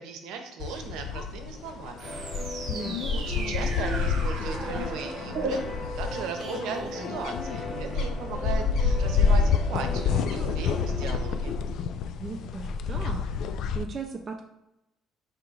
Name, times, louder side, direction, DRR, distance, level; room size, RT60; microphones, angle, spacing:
voice 1, 0.0-2.2 3.0-5.6 6.0-11.6, right 6 dB, 80° right, 6 dB, 0.7 m, -37 dB
sound 1, 0.6-13.8, left 5 dB, 70° left, 0.3 m, -29 dB
sound 2, 2.0-11.9, left 1 dB, 40° left, 1.5 m, -39 dB
sound 3, 2.0-7.6, right 3 dB, 55° right, 1.1 m, -37 dB
voice 2, 2.7-3.3 12.2-13.2 13.7-14.4, right 4 dB, 35° right, 2 dB, 0.4 m, -37 dB
4.4 x 2.8 x 3.9 m, 0.87 s
supercardioid pair, 90°, 0 cm